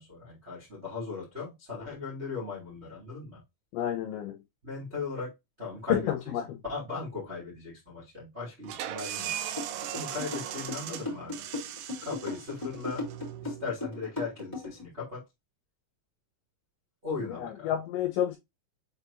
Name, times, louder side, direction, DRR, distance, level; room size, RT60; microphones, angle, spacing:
voice 1, 0.0-3.4 4.6-5.3 5.6-6.1 6.6-9.3 9.9-11.4 12.0-13.0 13.4-15.2 17.0-17.7, left 4 dB, 20° right, 1.8 m, -38 dB
voice 2, 3.7-4.4 5.9-6.4 17.4-18.4, left 11 dB, 75° left, 3.0 m, -29 dB
sound 1, 8.6-14.1, right 11 dB, 80° right, 3.4 m, -39 dB
sound 2, 9.6-14.8, left 3 dB, 5° left, 2.4 m, -36 dB
7.6 x 4.5 x 2.8 m
omnidirectional pair, 5.9 m